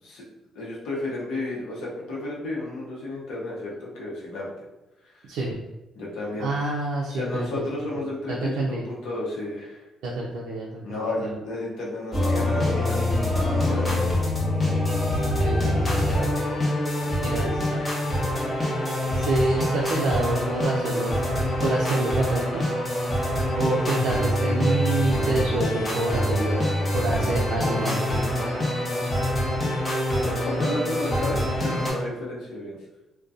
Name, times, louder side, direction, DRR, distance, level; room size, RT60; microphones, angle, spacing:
voice 1, 0.5-4.5 5.0-5.1 5.9-6.5 7.1-9.8 10.8-13.2 13.5-14.2 17.0-17.3 30.2-32.8, left 2 dB, 85° left, -4 dB, 0.8 m, -32 dB
voice 2, 6.4-7.6 7.9-8.8 10.0-11.3 15.1-16.3 17.2-17.8 19.1-21.1 21.6-22.6 23.5-26.6 26.9-28.0, right 2 dB, 85° right, -4 dB, 0.4 m, -27 dB
sound 1, 12.1-31.9, left 1 dB, 25° left, 0.8 m, -25 dB
2.6 x 2.2 x 2.4 m, 1.0 s
cardioid pair, 90°, 0 cm